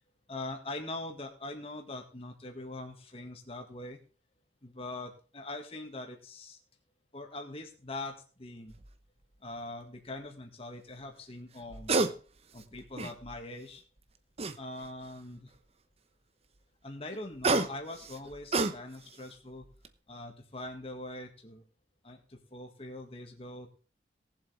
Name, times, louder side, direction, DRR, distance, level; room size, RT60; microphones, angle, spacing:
voice 1, 0.3-4.0 4.6-6.6 7.1-8.7 9.4-12.0 12.5-13.8 14.6-15.5 16.8-19.7 20.1-21.6 22.0-23.7, left 2 dB, 35° left, 3 dB, 1.9 m, -42 dB
sound 1, 8.7-8.9 11.6-12.1 12.6-13.4 14.4-15.0 17.1-19.2 19.6-19.9, right 3 dB, 35° right, 0.9 m, -30 dB
18.5 x 7.6 x 3.4 m, 0.37 s
head